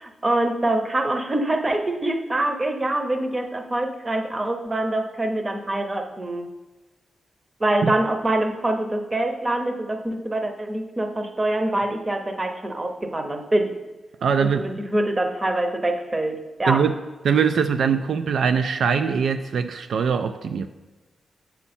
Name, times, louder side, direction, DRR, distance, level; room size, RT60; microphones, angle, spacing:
voice 1, 0.0-6.5 7.6-13.7 14.4-16.8, right 1 dB, 25° right, 5 dB, 0.7 m, -25 dB
voice 2, 14.2-14.8 16.7-16.9 17.2-20.7, right 6 dB, 75° right, 8 dB, 0.3 m, -22 dB
7.1 x 5.7 x 4.3 m, 1.1 s
wide cardioid pair, 130°, 0 cm